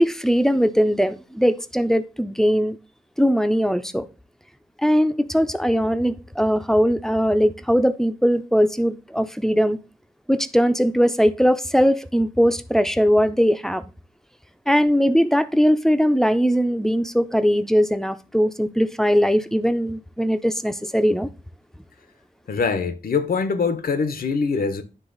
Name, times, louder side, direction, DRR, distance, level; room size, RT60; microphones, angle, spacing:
voice 1, 0.0-2.8 3.2-4.1 4.8-9.8 10.3-13.8 14.7-21.3, equal, 5° left, 0.4 m, -20 dB
voice 2, 22.5-24.8, left 5 dB, 80° left, 0.7 m, -23 dB
9.8 x 3.3 x 3.8 m
wide cardioid pair, 110°, 15 cm